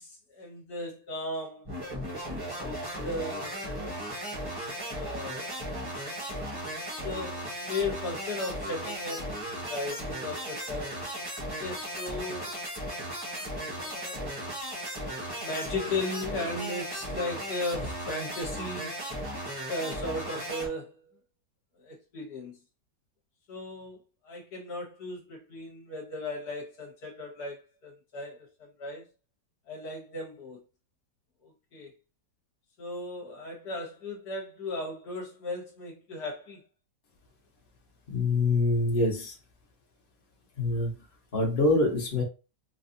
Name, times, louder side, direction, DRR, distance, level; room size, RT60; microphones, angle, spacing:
voice 1, 0.0-1.7 2.6-3.7 4.7-5.5 7.0-11.0 11.6-12.5 13.4-14.3 15.4-19.0 19.7-21.1 21.8-22.6 23.5-24.0 24.2-28.5 28.8-29.0 29.7-30.6 31.4-31.9 32.8-36.6, left 2 dB, 65° left, 1.6 m, -36 dB
sound 1, 1.7-20.7, equal, 15° right, 1.1 m, -36 dB
voice 2, 38.1-39.3 40.6-40.9 41.3-42.2, left 2 dB, 35° left, 1.2 m, -25 dB
4.2 x 2.4 x 2.6 m
omnidirectional pair, 1.9 m